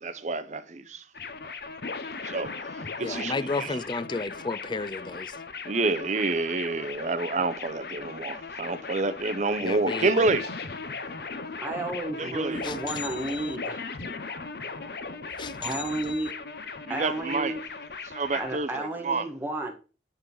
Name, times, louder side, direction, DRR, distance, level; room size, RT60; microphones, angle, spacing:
voice 1, 0.0-1.0 2.2-2.5 3.0-3.3 3.6-3.7 5.6-10.4 12.2-12.6 16.9-17.5 18.1-19.3, right 3 dB, 40° right, 0.6 m, -28 dB
sound 1, 1.1-18.6, left 4 dB, 60° left, 0.8 m, -38 dB
voice 2, 3.0-5.4 9.6-10.3 12.6-13.6 15.4-16.3, left 3 dB, 25° left, 0.4 m, -33 dB
voice 3, 11.6-13.9 15.6-16.3 16.9-17.6 18.3-19.7, right 2 dB, 10° right, 1.5 m, -32 dB
9.7 x 3.9 x 6.1 m
head